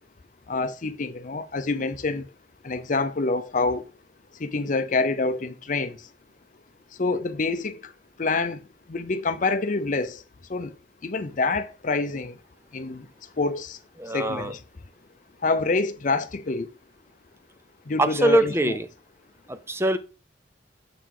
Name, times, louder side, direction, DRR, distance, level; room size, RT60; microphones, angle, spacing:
voice 1, 0.5-2.3 2.6-3.9 4.3-6.1 6.9-7.9 8.2-8.6 8.9-10.2 10.5-10.7 11.0-12.4 12.7-13.1 13.4-13.8 14.1-14.6 15.4-16.7 17.9-18.8, left 3 dB, 45° left, 0.6 m, -27 dB
voice 2, 14.0-14.5 18.0-18.9 19.5-20.0, right 1 dB, 15° right, 0.6 m, -23 dB
6.8 x 4.0 x 4.8 m
head